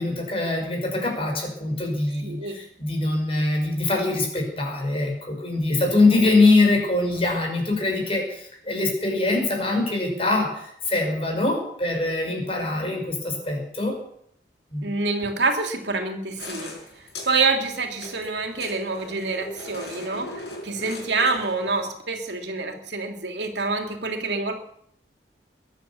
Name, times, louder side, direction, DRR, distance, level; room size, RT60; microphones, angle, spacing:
voice 1, 0.0-13.9 14.7-14.9, left 2 dB, 35° left, 2 dB, 5.4 m, -23 dB
voice 2, 2.2-2.6 5.7-5.8 14.8-16.7 17.2-24.5, right 3 dB, 90° right, 4 dB, 3.0 m, -27 dB
sound 1, 16.4-21.9, left 1 dB, 70° left, 5.6 m, -39 dB
22.0 x 9.3 x 7.1 m, 0.68 s
head